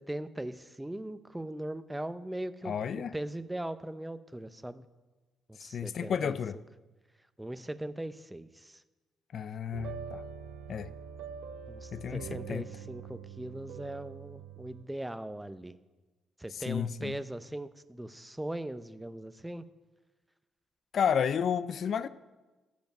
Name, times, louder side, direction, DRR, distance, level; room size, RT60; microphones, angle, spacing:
voice 1, 0.0-4.9 5.5-6.6 7.4-8.8 11.7-15.8 16.4-19.6, right 1 dB, 10° right, 0.6 m, -40 dB
voice 2, 2.6-3.1 5.6-6.6 9.3-10.2 10.7-10.9 11.9-12.7 16.7-17.2 20.9-22.1, left 7 dB, 60° left, 0.5 m, -31 dB
sound 1, 9.7-14.8, right 7 dB, 85° right, 0.9 m, -44 dB
14.0 x 5.2 x 9.4 m
cardioid pair, 90°, 0 cm